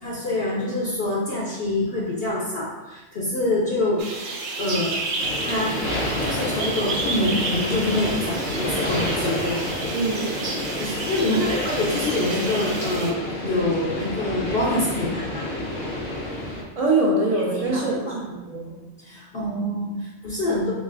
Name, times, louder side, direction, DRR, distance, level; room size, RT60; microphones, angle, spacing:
voice 1, 0.0-4.3 4.6-5.0 5.4-5.8 6.2-9.9 10.8-15.4 17.4-18.0 19.0-20.7, left 2 dB, 55° left, -6 dB, 0.9 m, -26 dB
sound 1, 4.0-13.1, right 3 dB, 60° right, 0.5 m, -31 dB
sound 2, 5.2-16.6, left 1 dB, 85° left, 1.5 m, -29 dB
voice 2, 9.9-10.3 11.3-11.6 16.8-18.7, right 2 dB, 35° right, -4 dB, 0.8 m, -24 dB
4.1 x 3.6 x 2.5 m, 1.1 s
omnidirectional pair, 1.3 m